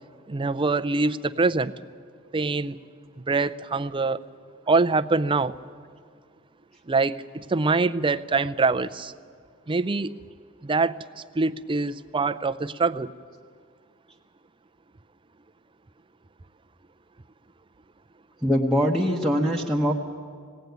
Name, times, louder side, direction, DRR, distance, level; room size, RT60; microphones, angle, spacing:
voice 1, 0.3-1.7 2.3-2.8 3.3-4.2 4.7-5.5 6.9-9.1 9.7-10.1 10.6-11.0 11.3-13.1, right 3 dB, 25° right, 10 dB, 0.5 m, -24 dB
voice 2, 18.4-19.9, equal, ahead, 0 dB, 1.1 m, -22 dB
19.5 x 17.5 x 9.3 m, 2.1 s
head